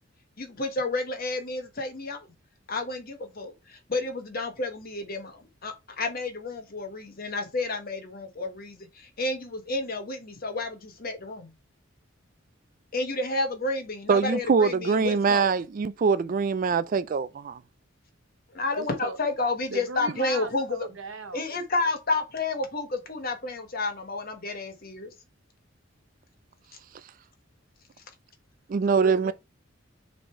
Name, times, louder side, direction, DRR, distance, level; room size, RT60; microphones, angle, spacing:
voice 1, 0.4-2.3 2.7-11.5 12.9-15.5 18.5-20.8 21.3-25.1, left 2 dB, 50° left, 1.4 m, -31 dB
voice 2, 14.1-17.6 28.7-29.3, right 5 dB, 45° right, 0.4 m, -23 dB
voice 3, 18.8-19.2 19.7-21.6 28.9-29.3, right 4 dB, 85° right, 0.9 m, -37 dB
6.2 x 3.4 x 4.5 m
head